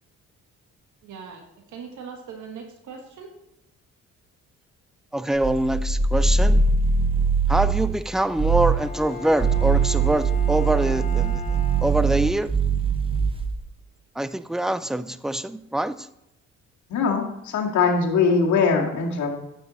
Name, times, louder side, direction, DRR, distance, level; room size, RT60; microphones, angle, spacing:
voice 1, 1.0-1.4 1.7-3.3, right 6 dB, 75° right, 3 dB, 1.6 m, -40 dB
voice 2, 5.1-6.6 7.5-11.4 11.8-12.5 14.2-16.1, right 1 dB, ahead, 15 dB, 0.3 m, -24 dB
sound 1, 5.3-8.0 8.4-8.9 9.3-13.6, right 4 dB, 20° right, 0.9 m, -22 dB
Bowed string instrument, 8.7-12.4, left 5 dB, 20° left, 2.3 m, -37 dB
voice 3, 16.9-19.4, left 5 dB, 70° left, 0 dB, 1.9 m, -21 dB
9.3 x 7.0 x 4.1 m, 0.84 s
cardioid pair, 90°, 30 cm